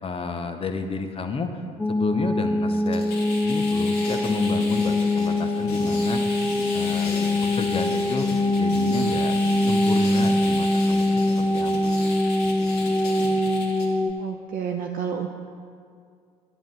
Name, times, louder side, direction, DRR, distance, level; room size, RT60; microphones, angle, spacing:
voice 1, 0.0-1.6 1.9-3.0 3.4-6.2 6.7-7.1 7.5-9.3 9.6-11.9, left 4 dB, 25° left, 7 dB, 0.8 m, -31 dB
sound 1, 1.8-14.1, left 1 dB, 5° left, 0.4 m, -23 dB
sound 2, 2.7-13.9, left 2 dB, 55° left, 1.8 m, -35 dB
voice 2, 14.2-15.3, right 8 dB, 45° right, 3 dB, 0.6 m, -30 dB
10.5 x 8.0 x 4.0 m, 2.2 s
figure-of-eight pair, 60°, 21 cm